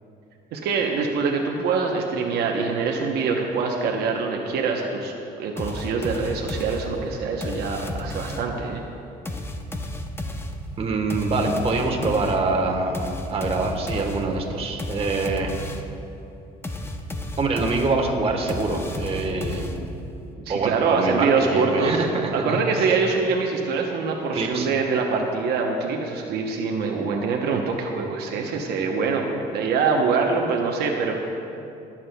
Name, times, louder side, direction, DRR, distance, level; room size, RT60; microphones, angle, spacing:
voice 1, 0.5-5.1 5.4-8.8 20.3-22.0 22.3-31.3, right 4 dB, 75° right, 1 dB, 0.9 m, -24 dB
sound 1, 5.6-8.6 9.3-16.0 16.6-20.1, left 1 dB, 15° left, 0.6 m, -33 dB
voice 2, 10.8-15.5 17.4-19.8 20.5-22.9 24.3-24.7, right 3 dB, 35° right, 2 dB, 1.2 m, -25 dB
21.0 x 7.4 x 2.3 m, 2.7 s
cardioid pair, 110°, 17 cm